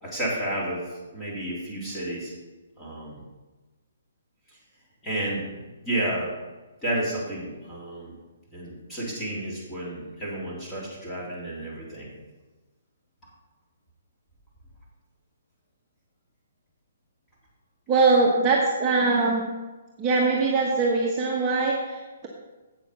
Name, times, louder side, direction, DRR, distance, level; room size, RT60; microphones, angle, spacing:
voice 1, 0.0-0.8 1.1-2.3 2.8-3.2 5.0-5.5 5.9-6.3 6.8-8.1 8.5-12.1, right 1 dB, 10° left, -6 dB, 3.4 m, -31 dB
voice 2, 17.9-19.4 20.0-22.3, right 3 dB, 20° right, -3 dB, 1.2 m, -22 dB
8.4 x 6.9 x 5.7 m, 1.2 s
hypercardioid pair, 155°, 0 cm